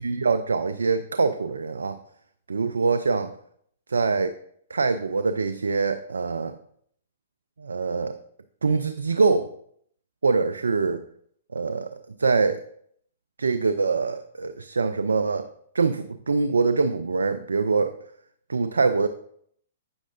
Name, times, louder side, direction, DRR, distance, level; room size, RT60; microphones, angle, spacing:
voice 1, 0.0-2.0 2.5-3.3 3.9-4.3 4.7-6.6 7.6-8.2 8.6-9.5 10.2-11.0 11.5-12.6 13.4-15.5 15.7-18.0 18.5-19.1, right 4 dB, 85° right, 10 dB, 0.3 m, -24 dB
8.5 x 6.2 x 2.5 m, 0.66 s
hypercardioid pair, 120°, 0 cm